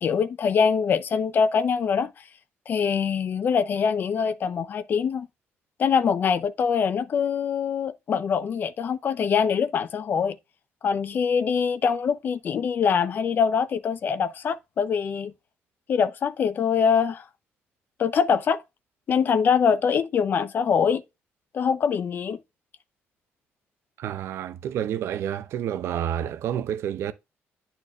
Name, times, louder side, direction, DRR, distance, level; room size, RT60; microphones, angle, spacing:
voice 1, 0.0-2.1 2.7-5.3 5.8-10.4 10.8-15.3 15.9-17.2 18.0-18.6 19.1-21.0 21.5-22.4, left 6 dB, 45° left, 0.6 m, -23 dB
voice 2, 24.0-27.1, right 10 dB, 65° right, 0.7 m, -29 dB
10.5 x 4.4 x 2.4 m
cardioid pair, 140°, 5 cm